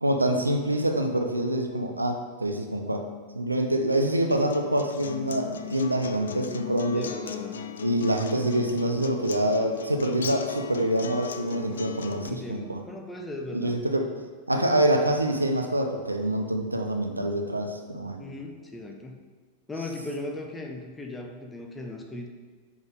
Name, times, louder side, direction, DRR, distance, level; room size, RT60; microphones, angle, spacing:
voice 1, 0.0-3.0 3.3-7.0 7.8-12.8 13.5-14.1 14.5-18.2, right 1 dB, 85° right, 4 dB, 0.6 m, -26 dB
Acoustic guitar, 4.3-12.3, left 8 dB, 65° left, 0.3 m, -37 dB
voice 2, 6.9-7.7 12.2-13.8 18.2-19.2 19.7-22.3, left 2 dB, 10° left, 2 dB, 0.8 m, -38 dB
6.3 x 5.2 x 3.6 m, 1.5 s
figure-of-eight pair, 90°, 0 cm